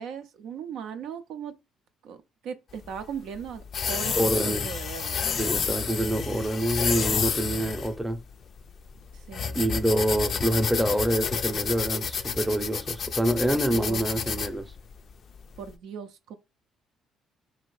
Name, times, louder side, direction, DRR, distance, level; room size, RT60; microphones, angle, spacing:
voice 1, 0.0-1.5 2.0-2.2 2.4-5.3 9.1-9.6 13.7-14.0 15.6-16.4, right 7 dB, 75° right, 0.4 m, -38 dB
sound 1, 2.7-15.7, left 6 dB, 55° left, 0.3 m, -30 dB
voice 2, 4.2-4.7 5.2-8.2 9.5-14.7, right 1 dB, 10° right, 0.6 m, -26 dB
2.7 x 2.5 x 3.1 m
supercardioid pair, 60°, 0 cm